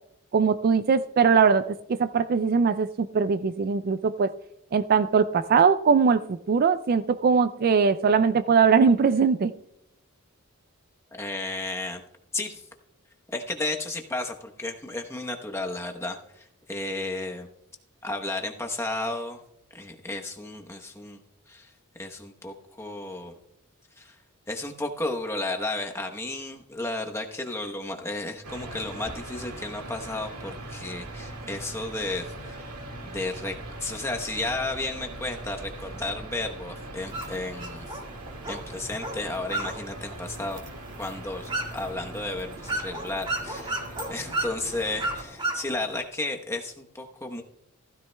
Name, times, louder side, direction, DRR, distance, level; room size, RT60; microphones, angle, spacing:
voice 1, 0.3-1.6 1.9-4.3 4.7-9.5, right 5 dB, 45° right, 13 dB, 0.3 m, -21 dB
voice 2, 11.1-12.0 12.3-12.7 13.3-17.5 18.0-19.4 19.7-21.2 21.5-23.4 24.0-24.2 24.5-32.7 33.0-38.0 38.5-40.6 41.0-47.4, left 2 dB, 10° left, 3 dB, 0.9 m, -33 dB
sound 1, 28.4-45.2, right 2 dB, 90° right, 1.9 m, -41 dB
sound 2, 37.1-46.0, right 2 dB, 20° right, 1.8 m, -35 dB
15.0 x 13.5 x 2.2 m, 0.81 s
head